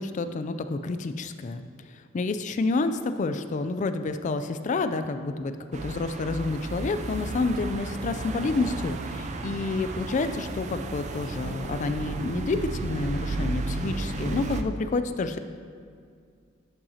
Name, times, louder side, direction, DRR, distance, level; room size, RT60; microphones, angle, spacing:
voice 1, 0.0-1.7 2.1-5.5 5.8-15.4, left 3 dB, 35° left, 10 dB, 0.3 m, -29 dB
sound 1, 5.7-14.6, right 2 dB, 35° right, 0.4 m, -33 dB
11.5 x 5.6 x 2.8 m, 2.2 s
head